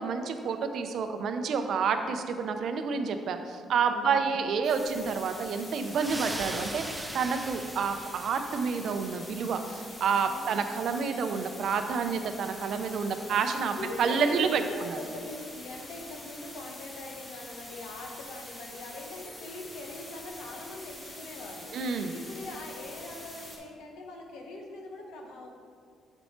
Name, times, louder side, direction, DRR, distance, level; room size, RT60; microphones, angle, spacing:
voice 1, 0.0-15.0 21.7-22.1, right 5 dB, 70° right, 7 dB, 0.5 m, -29 dB
voice 2, 3.9-4.3 10.2-10.8 12.8-13.4 13.8-25.5, left 2 dB, 90° left, 1 dB, 1.0 m, -42 dB
sound 1, 4.6-23.6, left 1 dB, 35° left, 1.4 m, -45 dB
sound 2, 5.8-8.9, right 1 dB, 10° right, 0.6 m, -39 dB
6.9 x 4.4 x 4.3 m, 2.2 s
cardioid pair, 90°, 0 cm